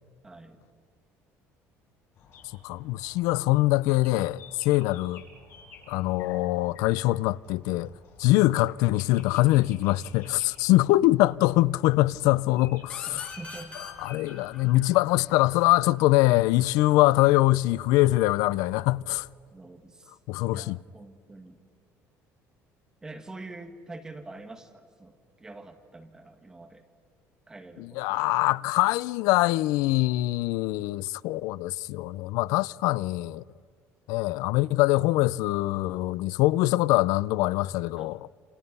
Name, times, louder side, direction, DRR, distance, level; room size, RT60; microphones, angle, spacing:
voice 1, 0.2-0.6 12.3-12.5 12.8-13.8 14.2-14.3 19.5-20.2 20.5-21.6 23.0-26.8 27.5-28.3 38.0-38.1, right 2 dB, 10° right, 2.0 m, -46 dB
sound 1, 2.1-19.3, left 3 dB, 50° left, 7.3 m, -53 dB
voice 2, 2.6-5.2 5.9-7.9 8.2-13.3 14.0-19.3 20.3-20.8 27.8-33.4 34.1-38.2, left 18 dB, 85° left, 0.5 m, -23 dB
sound 2, 12.9-16.3, left 4 dB, 20° left, 3.5 m, -44 dB
29.0 x 27.0 x 5.5 m
cardioid pair, 170°, 6 cm